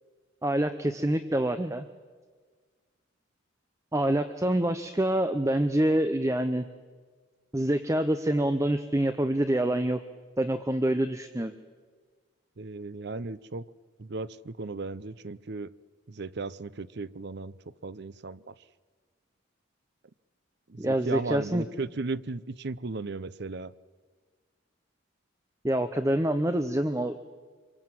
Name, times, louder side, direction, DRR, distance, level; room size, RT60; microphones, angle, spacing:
voice 1, 0.4-1.9 3.9-6.6 7.5-10.0 10.4-11.5 20.8-21.6 25.6-27.2, right 1 dB, 15° right, 10 dB, 0.7 m, -26 dB
voice 2, 12.6-13.7 14.0-15.7 16.1-17.5 17.8-18.5 20.7-23.7, right 3 dB, 55° right, 17 dB, 0.6 m, -36 dB
26.5 x 24.0 x 7.6 m, 1.5 s
head